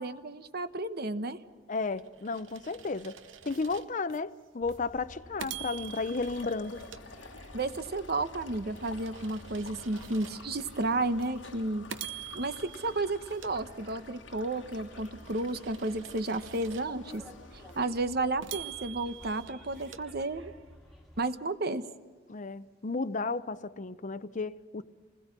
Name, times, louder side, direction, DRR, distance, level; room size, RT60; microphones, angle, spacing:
voice 1, 0.0-1.4 7.5-11.9 12.3-17.2 17.5-20.5 21.2-21.9, right 2 dB, 55° right, 1.1 m, -32 dB
voice 2, 1.7-3.2 3.4-6.8 22.3-24.8, left 3 dB, 40° left, 0.6 m, -33 dB
sound 1, 1.8-4.2 4.7-4.9 5.4-7.8 8.3-10.7 11.2-11.4 11.9-14.3 14.8-17.2 17.7-17.8 18.4-20.7, right 10 dB, 85° right, 0.9 m, -46 dB
Bus, 4.6-21.3, equal, ahead, 2.1 m, -53 dB
sound 2, 5.5-17.9, left 4 dB, 70° left, 1.3 m, -51 dB
28.0 x 20.5 x 6.0 m
head